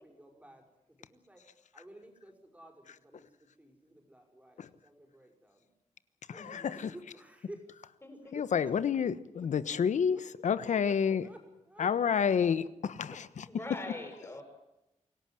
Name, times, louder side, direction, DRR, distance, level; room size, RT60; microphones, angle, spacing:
voice 1, 0.0-5.7 6.3-7.6 8.3-8.8 10.1-10.2 10.8-10.9 11.2-11.4 11.7-11.9 12.2-12.3 13.0-13.2, right 1 dB, 10° right, 5.4 m, -53 dB
voice 2, 6.3-6.9 8.3-10.2 10.4-11.2 11.8-13.4, left 7 dB, 80° left, 1.2 m, -29 dB
voice 3, 8.0-8.4 13.5-14.4, left 2 dB, 20° left, 7.1 m, -43 dB
27.0 x 17.5 x 7.7 m
wide cardioid pair, 150°, 12 cm